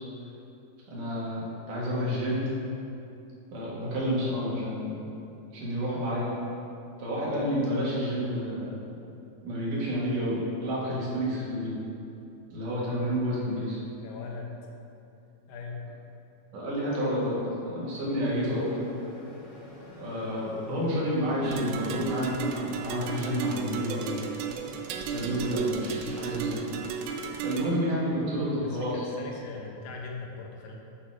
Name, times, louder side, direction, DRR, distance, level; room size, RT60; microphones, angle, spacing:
voice 1, 0.9-2.5 3.5-5.0 5.5-6.3 7.0-8.7 9.4-11.7 12.5-13.8 16.5-18.8 20.0-24.3 25.1-26.7 27.4-29.0, equal, 65° right, -7 dB, 3.0 m, -30 dB
voice 2, 4.3-4.6 14.0-14.5 15.5-15.8 20.7-21.0 25.9-26.2 28.4-30.8, left 4 dB, 75° left, 0 dB, 2.4 m, -41 dB
sound 1, 18.2-27.4, left 1 dB, 60° left, 2.4 m, -48 dB
sound 2, 21.4-27.7, right 6 dB, 80° right, 2.3 m, -34 dB
8.4 x 4.0 x 4.8 m, 2.7 s
omnidirectional pair, 4.3 m